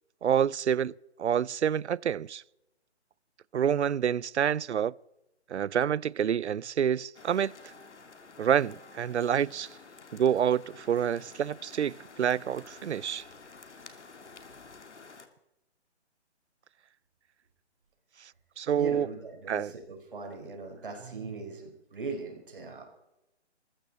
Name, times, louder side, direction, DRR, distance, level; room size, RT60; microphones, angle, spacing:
voice 1, 0.2-0.9 1.2-2.4 3.5-4.9 5.5-7.5 8.4-9.7 10.1-13.2 18.6-19.1 19.5-19.7, right 8 dB, 70° right, 0.5 m, -27 dB
sound 1, 7.1-15.3, left 4 dB, 75° left, 2.4 m, -51 dB
voice 2, 18.7-22.8, right 4 dB, 50° right, 4.8 m, -40 dB
21.0 x 14.0 x 4.2 m
hypercardioid pair, 175°, 35 cm